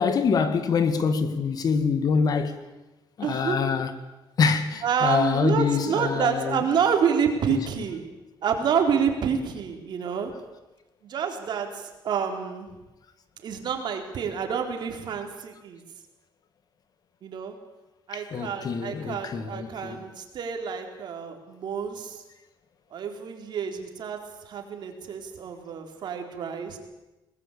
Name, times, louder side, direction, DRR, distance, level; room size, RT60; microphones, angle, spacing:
voice 1, 0.0-2.6 3.2-3.9 4.4-6.7 7.5-7.8 18.1-20.0, left 5 dB, 50° left, 2.1 m, -25 dB
voice 2, 3.2-3.6 4.8-8.1 8.4-10.3 11.0-12.7 13.4-15.8 17.2-17.6 18.1-22.2 22.9-24.2 24.4-26.8, right 7 dB, 60° right, 4.1 m, -28 dB
22.5 x 20.0 x 8.6 m
cardioid pair, 130°, 9 cm